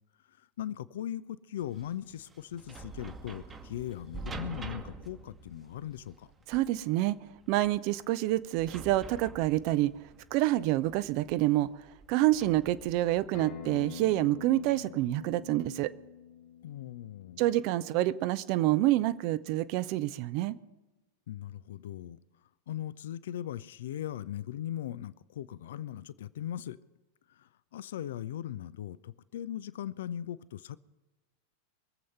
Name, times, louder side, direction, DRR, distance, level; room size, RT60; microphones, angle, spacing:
voice 1, 0.4-6.3 16.6-17.5 21.3-22.2 22.7-26.8 27.3-30.8, left 11 dB, 60° left, 0.4 m, -39 dB
sound 1, 1.6-13.3, right 3 dB, 20° right, 1.1 m, -47 dB
voice 2, 6.5-7.2 7.5-9.9 10.3-11.7 12.1-15.9 17.4-20.6, right 16 dB, 45° right, 0.5 m, -27 dB
Acoustic guitar, 13.3-18.5, left 7 dB, 40° left, 1.8 m, -46 dB
22.5 x 7.8 x 5.5 m
figure-of-eight pair, 90°, 0 cm